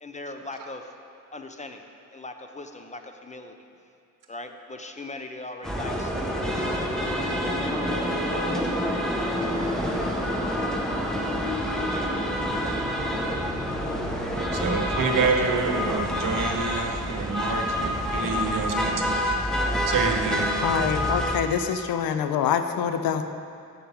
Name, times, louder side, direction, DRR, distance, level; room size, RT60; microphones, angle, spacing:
voice 1, 0.0-0.8 1.3-1.8 2.1-3.5 4.3-6.1, left 2 dB, 20° left, 6 dB, 0.6 m, -39 dB
sound 1, 5.6-21.4, equal, ahead, 1.0 m, -27 dB
voice 2, 14.1-19.4 19.9-20.5, right 4 dB, 65° right, 3 dB, 0.9 m, -27 dB
voice 3, 20.6-23.3, left 8 dB, 85° left, 9 dB, 0.5 m, -25 dB
9.0 x 6.8 x 3.5 m, 2.5 s
cardioid pair, 55°, 34 cm